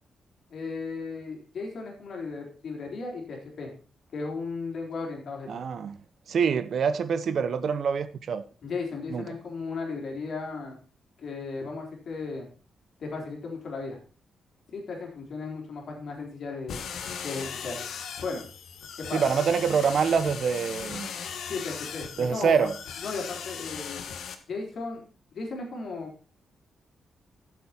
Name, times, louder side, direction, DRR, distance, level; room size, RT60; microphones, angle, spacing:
voice 1, 0.5-3.7 4.1-5.6 8.6-10.8 11.2-12.5 13.0-14.0 14.7-16.8 17.2-17.7 18.2-18.4 19.0-19.2 21.5-22.7 23.0-24.0 24.5-25.0 25.3-26.1, left 4 dB, 50° left, 3.6 m, -35 dB
voice 2, 5.5-6.0 6.3-8.4 9.1-9.3 19.1-21.1 22.2-22.8, right 6 dB, 50° right, 0.7 m, -25 dB
sound 1, 16.7-24.3, left 7 dB, 70° left, 1.4 m, -38 dB
12.5 x 7.2 x 4.3 m
wide cardioid pair, 160°, 0 cm